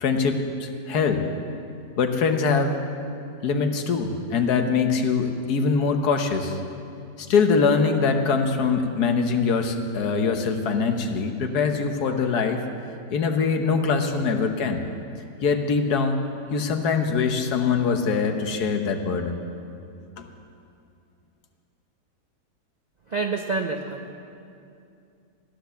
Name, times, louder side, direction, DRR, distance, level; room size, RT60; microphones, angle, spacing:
voice 1, 0.0-1.2 2.0-2.8 3.4-6.6 7.2-12.6 13.1-14.8 15.4-16.2 16.5-19.4 20.2-20.3, left 5 dB, 80° left, 6 dB, 1.5 m, -23 dB
voice 2, 23.1-24.1, right 4 dB, 55° right, 3 dB, 0.4 m, -28 dB
15.0 x 10.5 x 7.0 m, 2.6 s
omnidirectional pair, 1.7 m